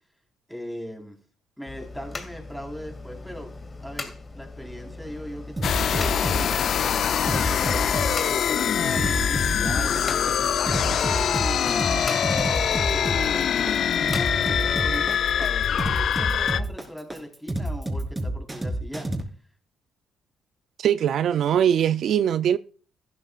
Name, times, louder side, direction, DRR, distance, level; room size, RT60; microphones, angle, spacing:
voice 1, 0.5-1.2 1.6-3.5 3.8-6.8 7.5-10.5 11.0-19.1, equal, ahead, 4.1 m, -39 dB
sound 1, 1.7-15.2, left 3 dB, 30° left, 2.3 m, -40 dB
sound 2, 5.6-16.6, left 8 dB, 60° left, 0.4 m, -24 dB
sound 3, 5.6-19.2, right 1 dB, 15° right, 4.1 m, -29 dB
voice 2, 20.8-22.6, right 9 dB, 70° right, 0.4 m, -21 dB
15.0 x 12.5 x 2.4 m
cardioid pair, 90°, 0 cm